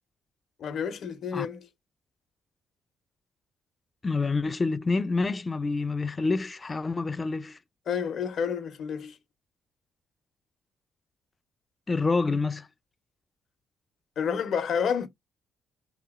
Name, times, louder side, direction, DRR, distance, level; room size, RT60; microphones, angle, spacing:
voice 1, 0.6-1.7 7.9-9.2 14.2-15.1, left 7 dB, 65° left, 0.7 m, -29 dB
voice 2, 4.0-7.6 11.9-12.7, left 3 dB, 25° left, 0.3 m, -27 dB
2.8 x 2.8 x 2.3 m
cardioid pair, 90°, 0 cm